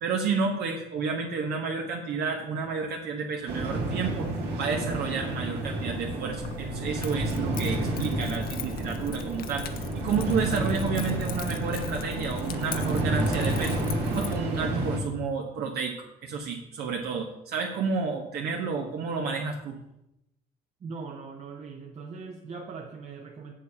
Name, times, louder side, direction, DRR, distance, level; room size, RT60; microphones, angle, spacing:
voice 1, 0.0-4.3 4.6-13.8 14.1-19.8, right 5 dB, 70° right, 1 dB, 1.2 m, -31 dB
sound 1, 3.5-15.0, right 1 dB, 85° right, 2.1 m, -30 dB
Keys jangling, 6.4-14.4, left 8 dB, 60° left, 0.7 m, -40 dB
voice 2, 20.8-23.5, right 4 dB, 40° right, 1 dB, 1.0 m, -40 dB
7.3 x 7.1 x 5.5 m, 0.86 s
cardioid pair, 110°, 17 cm